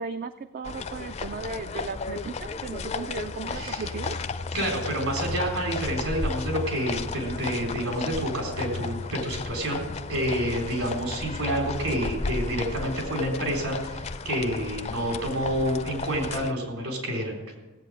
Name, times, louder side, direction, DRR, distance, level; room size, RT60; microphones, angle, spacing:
voice 1, 0.0-4.3, right 4 dB, 40° right, 10 dB, 0.3 m, -36 dB
sound 1, 0.6-16.5, left 4 dB, 30° left, 0.4 m, -34 dB
voice 2, 3.5-3.9 4.5-9.8 10.1-17.4, equal, 75° right, 1 dB, 3.8 m, -28 dB
16.5 x 8.3 x 6.4 m, 1.1 s
head